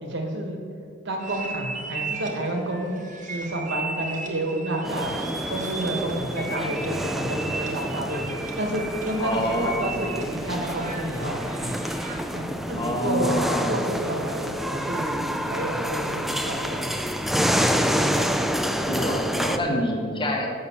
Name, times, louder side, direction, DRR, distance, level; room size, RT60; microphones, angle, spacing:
voice 1, 0.0-0.6 1.0-5.1 5.5-8.2 8.5-11.7 12.3-13.3 13.7-17.0, right 1 dB, 65° right, 2 dB, 1.6 m, -30 dB
sound 1, 1.2-12.4, right 3 dB, 40° right, 1.2 m, -36 dB
sound 2, 4.8-19.6, equal, ahead, 0.3 m, -28 dB
voice 2, 9.2-10.2 12.7-13.8 18.9-20.5, left 1 dB, 25° left, 1 dB, 1.4 m, -27 dB
6.9 x 6.6 x 7.2 m, 2.4 s
head